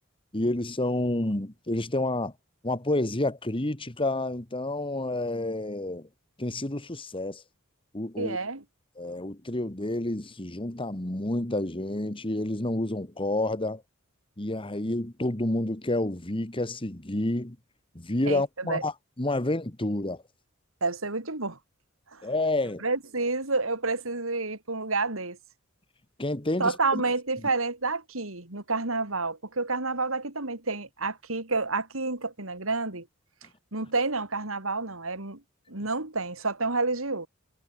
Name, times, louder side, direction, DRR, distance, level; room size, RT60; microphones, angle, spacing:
voice 1, 0.3-2.3 2.6-6.1 6.4-7.4 7.9-8.4 9.0-13.8 14.4-17.6 18.0-20.2 22.2-22.8 26.2-27.0, left 1 dB, 25° left, 1.7 m, -29 dB
voice 2, 8.2-8.6 18.3-18.8 20.8-21.6 22.1-22.3 22.8-25.4 26.6-33.1 33.7-35.4 35.7-37.3, right 3 dB, 75° right, 3.9 m, -29 dB
head